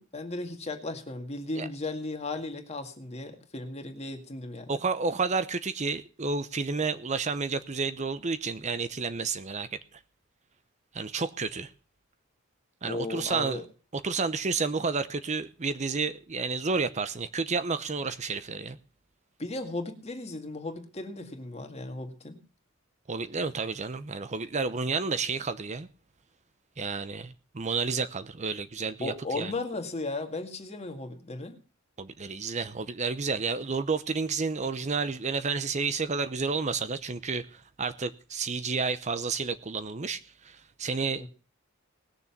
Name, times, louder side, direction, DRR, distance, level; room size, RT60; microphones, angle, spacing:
voice 1, 0.0-4.7 12.8-13.7 19.4-22.4 29.0-31.6 41.2-41.3, left 2 dB, 30° left, 2.0 m, -36 dB
voice 2, 4.7-9.7 10.9-11.7 12.8-13.6 14.0-18.8 23.1-25.9 26.8-29.5 32.0-41.3, right 4 dB, 35° right, 0.7 m, -31 dB
19.5 x 6.9 x 5.8 m
head